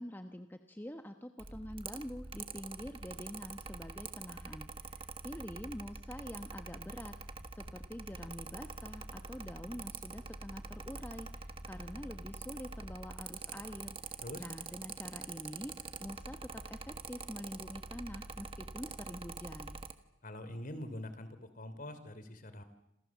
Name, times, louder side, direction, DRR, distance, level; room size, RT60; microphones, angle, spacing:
voice 1, 0.0-19.8, equal, 10° left, 7 dB, 1.1 m, -46 dB
Mechanical fan, 1.4-19.9, right 4 dB, 25° right, 1.5 m, -45 dB
voice 2, 20.2-22.6, left 1 dB, 40° left, 11 dB, 3.2 m, -44 dB
27.5 x 27.5 x 7.4 m, 0.89 s
head